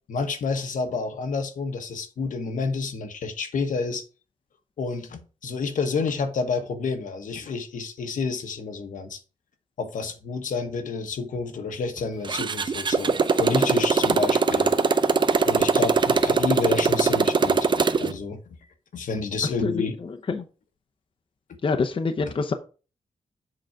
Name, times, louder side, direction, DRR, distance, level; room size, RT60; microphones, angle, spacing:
voice 1, 0.1-4.0 4.8-9.2 9.8-14.8 15.4-18.4 18.9-20.0, left 4 dB, 80° left, 1.2 m, -29 dB
Motorcycle, 12.2-18.1, right 4 dB, 35° right, 0.6 m, -21 dB
voice 2, 19.6-20.4 21.6-22.5, left 4 dB, 40° left, 0.7 m, -26 dB
7.6 x 3.9 x 5.8 m
wide cardioid pair, 130°, 13 cm